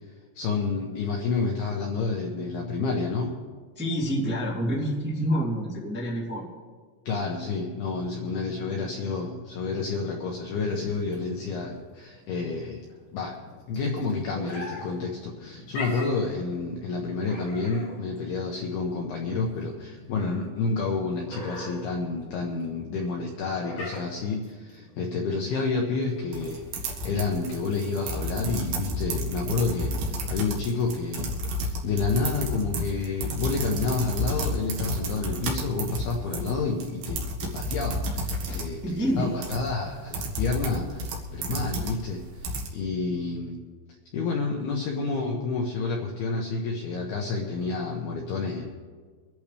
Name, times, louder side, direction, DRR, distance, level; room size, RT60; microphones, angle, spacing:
voice 1, 0.4-3.3 7.1-12.8 13.1-13.3 13.7-31.3 31.6-43.6 44.1-48.7, left 4 dB, 75° left, 0 dB, 2.4 m, -29 dB
voice 2, 3.7-6.5 38.4-39.3, equal, 5° right, -6 dB, 1.5 m, -28 dB
sound 1, 10.7-26.6, left 2 dB, 40° left, 5.8 m, -43 dB
sound 2, 26.3-42.7, equal, 60° right, 3.1 m, -31 dB
24.5 x 11.5 x 3.4 m, 1.5 s
omnidirectional pair, 6.0 m